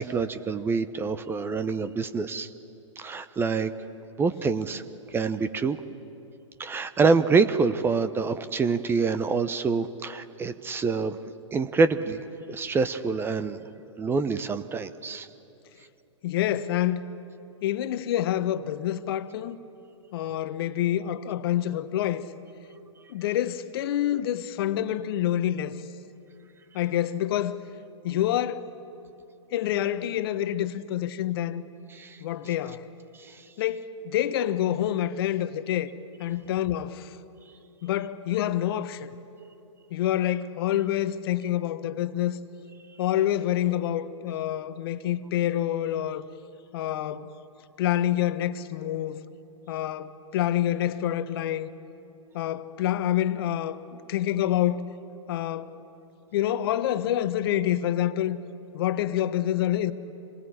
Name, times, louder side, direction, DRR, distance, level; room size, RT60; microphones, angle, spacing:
voice 1, 0.0-2.5 3.0-3.7 4.2-4.8 5.1-5.8 6.6-11.2 11.5-13.6 14.0-15.3 31.9-32.2 33.2-33.4, right 4 dB, 15° right, 0.8 m, -26 dB
voice 2, 16.2-17.0 17.6-19.6 20.1-22.3 23.1-25.8 26.7-27.6 28.0-28.7 29.5-31.6 32.2-32.8 33.6-35.9 36.2-37.2 37.8-39.1 39.9-42.4 43.0-46.2 46.7-47.3 47.8-49.2 49.7-51.7 52.3-53.8 54.1-54.9 55.3-55.7 56.3-58.4 58.7-59.9, left 12 dB, 50° left, 1.2 m, -27 dB
26.5 x 20.5 x 9.9 m
figure-of-eight pair, 115°, 16 cm